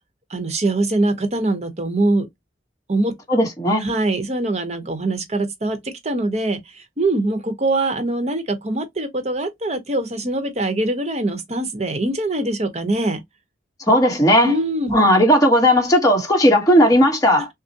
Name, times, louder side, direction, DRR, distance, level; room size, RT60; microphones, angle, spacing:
voice 1, 0.3-2.3 2.9-3.1 3.8-13.2 14.4-14.9 17.4-17.5, right 2 dB, 40° right, 1.0 m, -23 dB
voice 2, 3.3-3.8 13.9-14.5 14.9-17.5, equal, 20° left, 1.3 m, -15 dB
6.2 x 2.1 x 2.9 m
head